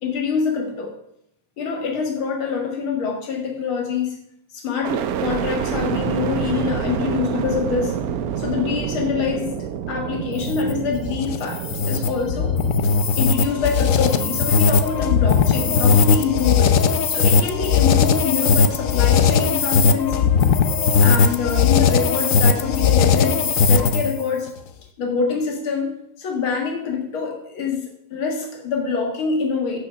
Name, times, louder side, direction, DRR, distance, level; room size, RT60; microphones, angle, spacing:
voice 1, 0.0-0.9 1.6-4.2 4.5-7.9 8.4-9.6 9.9-12.6 13.1-20.4 21.0-24.5 25.0-29.8, left 5 dB, 85° left, 1 dB, 2.6 m, -25 dB
sound 1, 4.8-18.8 19.3-20.1, right 8 dB, 70° right, 0.9 m, -29 dB
sound 2, 10.3-24.2, left 6 dB, 65° left, 0.8 m, -18 dB
12.5 x 6.7 x 5.4 m, 0.76 s
omnidirectional pair, 2.2 m